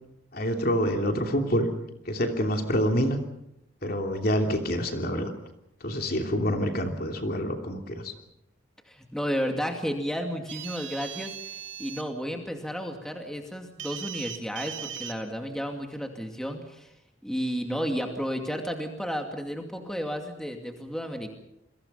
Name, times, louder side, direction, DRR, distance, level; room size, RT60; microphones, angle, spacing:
voice 1, 0.3-1.7 2.1-3.2 3.8-5.3 5.8-8.1, equal, 50° left, 4 dB, 3.0 m, -27 dB
voice 2, 8.9-16.9 17.2-21.3, equal, 5° left, 3 dB, 2.4 m, -32 dB
sound 1, 10.5-12.0 13.8-15.1, right 9 dB, 75° right, 2.3 m, -38 dB
29.0 x 23.0 x 5.7 m, 0.81 s
head